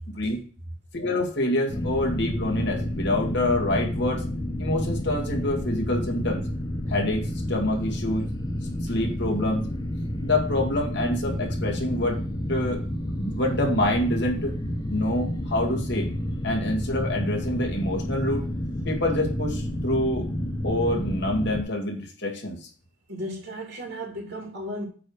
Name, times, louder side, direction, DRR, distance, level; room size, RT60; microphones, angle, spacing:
voice 1, 0.9-4.2 4.6-6.4 6.9-8.3 8.8-9.7 10.2-12.2 12.5-12.8 13.2-14.5 14.9-16.1 16.4-18.5 18.9-20.3 20.6-22.7, left 1 dB, 55° left, 0 dB, 2.2 m, -26 dB
sound 1, 1.7-21.6, left 1 dB, 20° left, 0.6 m, -30 dB
voice 2, 23.1-24.9, equal, 70° right, -3 dB, 2.8 m, -35 dB
8.5 x 3.4 x 6.4 m, 0.40 s
head